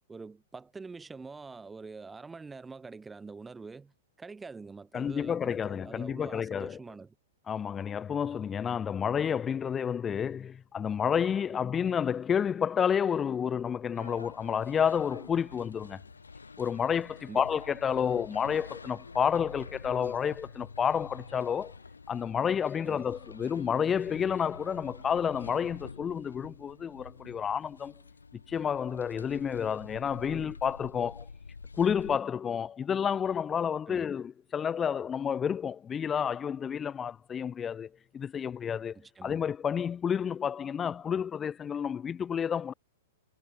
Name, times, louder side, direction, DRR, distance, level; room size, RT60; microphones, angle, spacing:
voice 1, 0.0-7.1 11.5-11.7 17.3-17.5 22.8-23.1 33.9-34.1 38.9-39.4, right 4 dB, 10° right, 6.2 m, -45 dB
voice 2, 4.9-6.8 7.5-16.0 16.6-21.7 22.1-27.9 28.5-31.3 31.8-42.7, left 7 dB, 20° left, 3.5 m, -30 dB
sound 1, 13.9-32.2, left 4 dB, 85° left, 7.4 m, -48 dB
hypercardioid pair, 110°, 0 cm